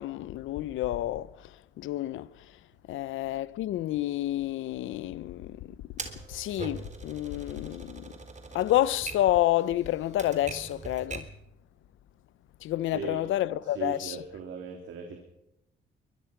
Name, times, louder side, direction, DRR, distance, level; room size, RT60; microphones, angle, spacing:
voice 1, 0.0-1.5 1.8-2.3 2.9-5.8 6.3-8.1 8.5-11.3 12.6-14.2, left 14 dB, 80° left, 0.8 m, -29 dB
Typewriter, 6.0-11.4, right 4 dB, 35° right, 3.6 m, -42 dB
voice 2, 13.7-15.2, right 7 dB, 75° right, 3.4 m, -38 dB
23.5 x 20.0 x 6.0 m
cardioid pair, 90°, 20 cm